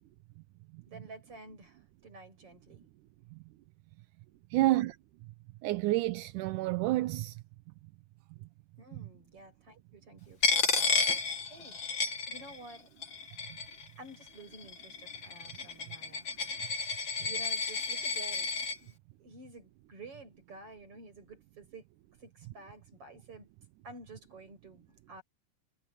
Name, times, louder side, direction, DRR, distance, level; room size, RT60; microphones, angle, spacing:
voice 1, 0.8-2.9 8.8-11.8 12.3-12.9 14.0-16.7 17.2-18.5 18.8-21.8 22.2-23.5 23.8-25.2, right 2 dB, 40° right, 8.3 m, -51 dB
voice 2, 4.5-4.9 5.6-7.4, right 17 dB, 75° right, 2.1 m, -29 dB
Coin (dropping), 10.4-12.7 13.0-13.8 14.5-18.8, left 4 dB, 40° left, 2.3 m, -31 dB
omnidirectional pair, 4.0 m